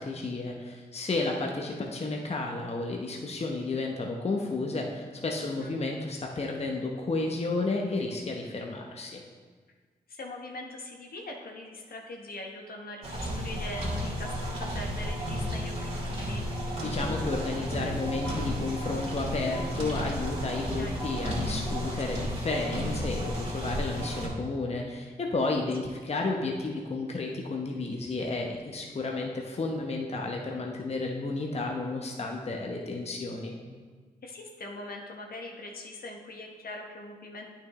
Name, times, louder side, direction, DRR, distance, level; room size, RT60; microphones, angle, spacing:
voice 1, 0.0-9.2 16.8-33.6, left 3 dB, 40° left, 1 dB, 0.9 m, -32 dB
voice 2, 5.4-5.7 10.1-16.4 20.8-21.0 34.2-37.5, left 2 dB, 60° left, 1 dB, 1.1 m, -42 dB
sound 1, 13.0-24.3, equal, 40° right, 2.2 m, -33 dB
9.1 x 5.8 x 3.1 m, 1.5 s
supercardioid pair, 45°, 17 cm